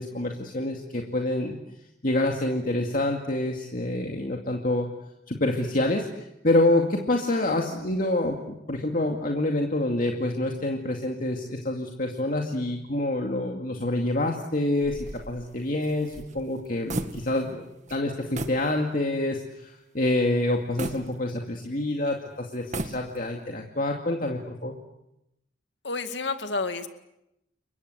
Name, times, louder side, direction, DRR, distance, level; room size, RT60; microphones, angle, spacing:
voice 1, 0.0-1.5 2.0-4.9 5.3-17.6 17.9-24.7, left 1 dB, 45° left, 1 dB, 2.3 m, -27 dB
sound 1, 14.8-17.6 17.9-18.0 18.3-18.7 19.1-19.2 20.8-21.8 22.5-23.4, right 2 dB, 40° right, 2.0 m, -36 dB
voice 2, 25.8-26.9, left 3 dB, 65° left, 8 dB, 2.1 m, -30 dB
29.5 x 23.5 x 8.1 m, 0.86 s
head